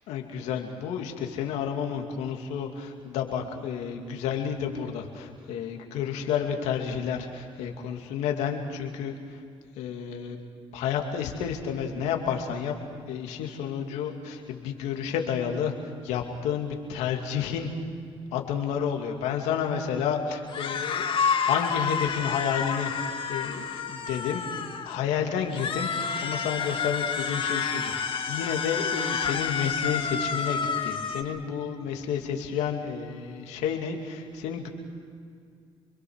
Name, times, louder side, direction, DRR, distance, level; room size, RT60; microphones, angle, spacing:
voice 1, 0.1-9.1 9.8-10.4 10.7-12.7 13.1-15.7 16.0-17.7 18.3-24.5 24.9-25.9 26.2-27.9 28.3-34.7, left 7 dB, 90° left, 3 dB, 2.5 m, -30 dB
sound 1, 20.5-25.0 25.5-31.2, left 6 dB, 50° left, 2.1 m, -29 dB
28.0 x 22.0 x 6.5 m, 2.3 s
supercardioid pair, 70°, 11 cm